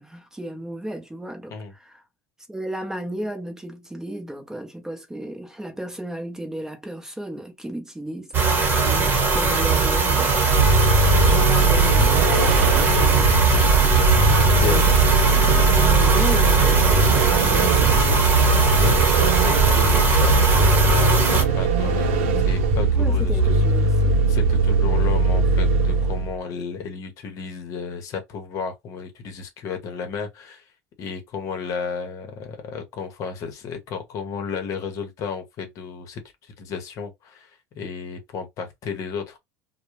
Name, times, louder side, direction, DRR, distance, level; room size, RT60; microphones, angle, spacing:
voice 1, 0.0-2.0 2.5-8.3 8.8-10.3 11.2-15.0 15.3-18.3 22.9-24.2, right 1 dB, 5° right, 0.7 m, -34 dB
sound 1, 8.3-21.4, right 4 dB, 30° right, 1.0 m, -20 dB
Vehicle, 10.5-26.4, right 2 dB, 85° right, 0.6 m, -20 dB
voice 2, 11.0-11.5 14.4-15.1 18.7-23.4 24.3-30.6 31.0-39.4, left 5 dB, 50° left, 0.8 m, -33 dB
2.2 x 2.0 x 3.0 m
supercardioid pair, 100°, 7 cm